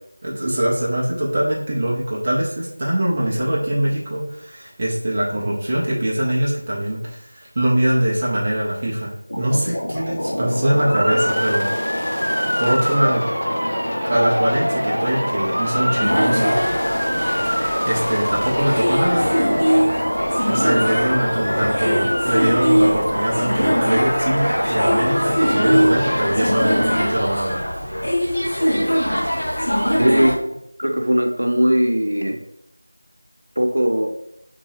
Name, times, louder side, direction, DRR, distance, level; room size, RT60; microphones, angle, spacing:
voice 1, 0.2-11.7 12.3-13.2 14.1-16.5 17.5-19.3 20.5-27.6, right 1 dB, 20° right, -6 dB, 0.4 m, -22 dB
sound 1, 9.3-27.1, equal, 50° left, 0.6 m, -26 dB
Motor vehicle (road) / Siren, 10.9-27.1, equal, 50° right, 0.8 m, -27 dB
sound 2, 16.0-30.4, equal, 85° left, 0.9 m, -21 dB
voice 2, 30.0-30.3 30.8-32.4 33.6-34.1, equal, 80° right, 3 dB, 0.5 m, -18 dB
2.6 x 2.2 x 3.2 m, 0.76 s
figure-of-eight pair, 180°, 0 cm